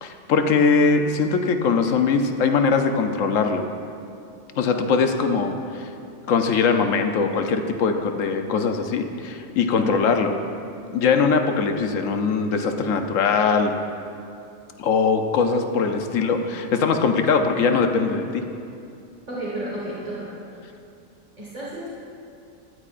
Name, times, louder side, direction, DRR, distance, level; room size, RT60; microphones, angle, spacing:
voice 1, 0.0-3.6 4.6-5.9 6.3-10.3 10.9-13.7 14.8-18.5, left 5 dB, 80° left, 6 dB, 1.1 m, -21 dB
voice 2, 19.3-20.3 21.4-21.9, right 1 dB, 30° right, -6 dB, 1.6 m, -31 dB
14.0 x 12.0 x 2.5 m, 2.6 s
omnidirectional pair, 1.3 m